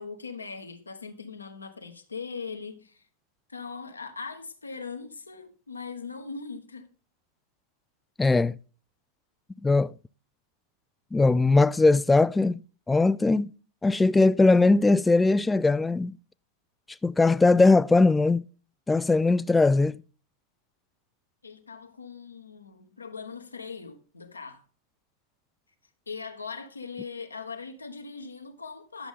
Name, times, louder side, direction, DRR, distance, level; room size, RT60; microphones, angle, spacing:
voice 1, 0.0-3.0 3.5-6.9 21.4-24.6 26.1-29.1, left 5 dB, 85° left, 1.1 m, -40 dB
voice 2, 8.2-8.6 9.6-9.9 11.1-12.6 12.9-13.5 13.8-16.1 17.0-18.4 18.9-20.0, left 3 dB, 10° left, 0.3 m, -20 dB
11.0 x 7.0 x 3.7 m
figure-of-eight pair, 90°, 0 cm